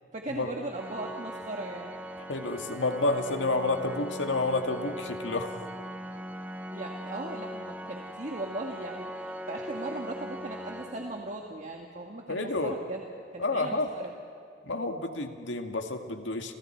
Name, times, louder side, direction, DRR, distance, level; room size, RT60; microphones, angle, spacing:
voice 1, 0.1-2.0 6.7-14.1, right 2 dB, 40° right, 1 dB, 1.6 m, -38 dB
Organ, 0.7-11.7, equal, 10° right, 1.0 m, -40 dB
voice 2, 2.2-5.5 12.3-12.8 13.4-13.9 14.6-16.5, left 2 dB, 90° left, 5 dB, 2.0 m, -30 dB
30.0 x 29.0 x 4.5 m, 2.6 s
head